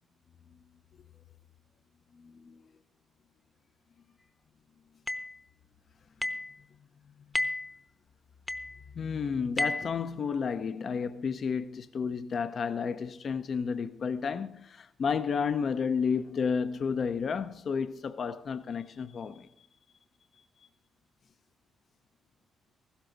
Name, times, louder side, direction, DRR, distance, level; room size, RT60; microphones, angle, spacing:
voice 1, 2.2-2.6 8.9-19.5, left 6 dB, 50° left, 0.5 m, -31 dB
sound 1, 5.1-5.3 6.2-6.5 7.3-7.7 8.5-8.8 9.6-9.9, left 2 dB, 10° left, 0.8 m, -31 dB
15.0 x 12.5 x 3.9 m
cardioid pair, 90°, 0 cm